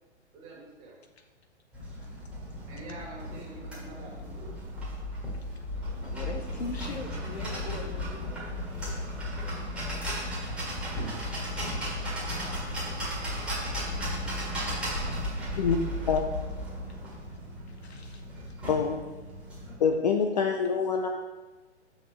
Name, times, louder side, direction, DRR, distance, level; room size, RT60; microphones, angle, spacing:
voice 1, 0.3-1.0 2.7-4.5 20.1-20.5, right 2 dB, 25° right, -2 dB, 1.8 m, -46 dB
sound 1, 1.7-19.7, left 1 dB, 5° right, 1.7 m, -35 dB
voice 2, 6.0-8.4 15.1-15.3 16.8-17.0 17.7-18.2, left 3 dB, 65° left, 4 dB, 0.9 m, -41 dB
voice 3, 18.7-19.0 19.8-21.1, left 6 dB, 40° left, 3 dB, 0.5 m, -25 dB
7.1 x 6.2 x 3.2 m, 1.2 s
figure-of-eight pair, 120°, 34 cm